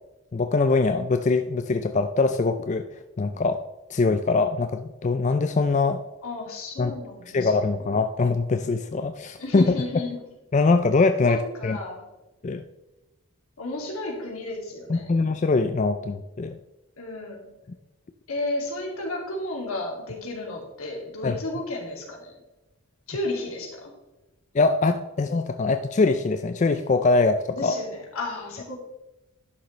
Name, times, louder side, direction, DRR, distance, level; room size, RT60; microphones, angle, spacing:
voice 1, 0.3-2.8 3.2-3.6 3.9-6.0 6.8-7.0 7.3-9.7 10.5-11.8 12.4-12.6 14.9-16.6 21.2-21.4 24.5-27.8, left 3 dB, 35° left, 8 dB, 0.3 m, -23 dB
voice 2, 6.2-7.5 7.8-7.9 9.4-10.2 11.2-12.0 13.6-15.2 17.0-17.5 18.3-22.3 23.1-23.9 27.5-28.8, left 2 dB, 80° left, -1 dB, 2.5 m, -33 dB
11.5 x 6.5 x 3.2 m, 1.0 s
head